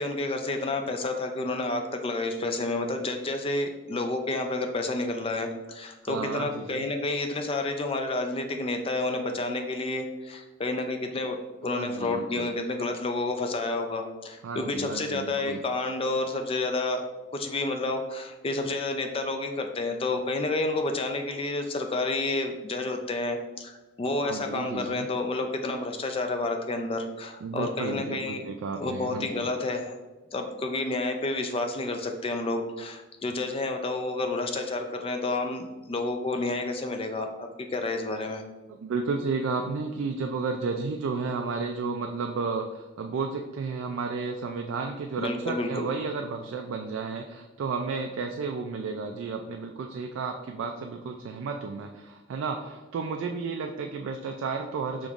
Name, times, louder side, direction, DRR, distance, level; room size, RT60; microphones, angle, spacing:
voice 1, 0.0-17.0 17.3-28.5 28.8-30.0 30.3-38.4 45.2-45.9, left 2 dB, 30° left, 5 dB, 0.4 m, -30 dB
voice 2, 6.0-6.9 11.6-12.5 14.4-15.6 24.2-25.1 27.4-29.5 38.7-55.1, right 4 dB, 75° right, 3 dB, 0.3 m, -32 dB
5.1 x 3.0 x 2.4 m, 1.2 s
head